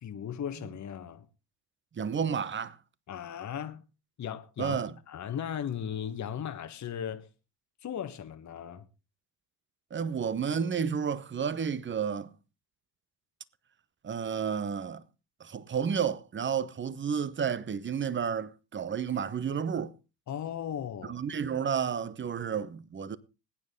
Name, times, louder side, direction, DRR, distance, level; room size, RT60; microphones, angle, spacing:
voice 1, 0.0-1.3 3.1-3.8 4.2-4.8 5.1-7.3 7.8-8.8 20.3-21.1, left 9 dB, 35° left, 1.4 m, -37 dB
voice 2, 1.9-2.8 4.6-4.9 9.9-12.3 14.0-15.0 15.4-19.9 21.1-23.2, right 7 dB, 25° right, 1.0 m, -31 dB
20.5 x 9.5 x 3.8 m
hypercardioid pair, 60°, 48 cm